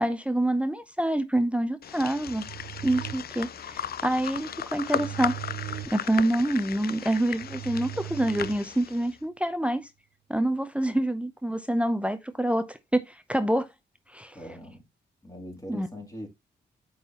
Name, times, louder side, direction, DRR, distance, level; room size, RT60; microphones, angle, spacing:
voice 1, 0.0-2.4 2.8-5.4 5.9-9.9 10.3-13.7 14.1-14.4 15.7-15.9, right 1 dB, 5° right, 0.7 m, -27 dB
sound 1, 1.8-9.1, left 9 dB, 55° left, 0.4 m, -36 dB
sound 2, 2.2-9.1, right 15 dB, 65° right, 0.5 m, -41 dB
voice 2, 14.3-14.8 15.2-16.3, equal, 20° left, 3.1 m, -41 dB
9.0 x 4.0 x 3.0 m
supercardioid pair, 50°, 19 cm